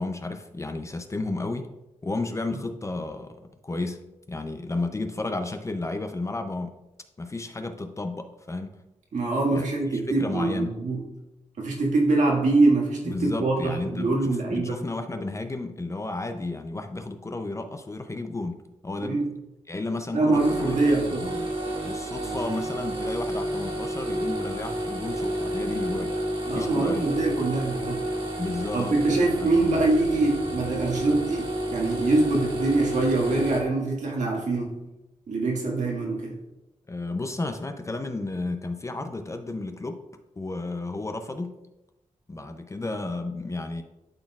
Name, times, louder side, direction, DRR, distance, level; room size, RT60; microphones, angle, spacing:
voice 1, 0.0-1.7 2.0-4.0 4.3-6.7 7.2-8.8 9.5-9.7 9.9-10.8 13.0-19.2 19.7-20.7 21.2-21.5 21.8-26.1 26.5-27.0 28.4-28.9 29.4-29.6 36.9-40.0 40.4-41.6 42.3-43.8, left 2 dB, 25° left, 7 dB, 0.5 m, -32 dB
voice 2, 9.1-11.0 11.6-14.8 19.0-19.3 20.1-21.3 26.5-28.0 28.7-34.8 35.3-36.4, right 2 dB, 70° right, -1 dB, 1.8 m, -24 dB
sound 1, 20.3-33.6, right 1 dB, 45° right, 1.5 m, -30 dB
sound 2, 29.2-32.2, left 1 dB, 50° left, 1.5 m, -45 dB
12.0 x 4.2 x 2.4 m, 0.96 s
wide cardioid pair, 105°, 13 cm